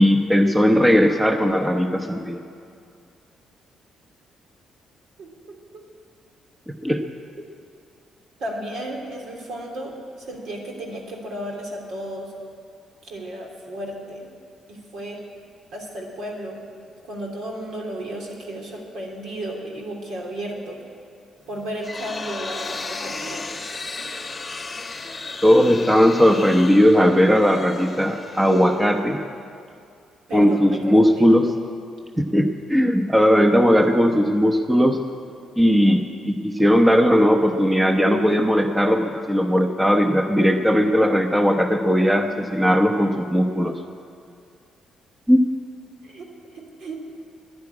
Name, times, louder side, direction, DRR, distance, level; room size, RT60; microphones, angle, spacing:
voice 1, 0.0-2.4 6.8-7.0 25.4-29.2 30.3-31.5 32.2-35.0 35.6-43.7 45.3-45.4, equal, 10° right, 5 dB, 0.9 m, -18 dB
voice 2, 5.2-5.8 8.4-12.3 13.0-14.3 14.7-15.2 15.7-16.6 17.0-20.8 21.5-23.5 30.3-31.3 46.0-47.0, right 1 dB, 70° right, 0 dB, 3.0 m, -34 dB
sound 1, 21.5-29.3, left 3 dB, 25° left, 1.0 m, -35 dB
11.0 x 10.5 x 9.7 m, 2.4 s
cardioid pair, 90°, 0 cm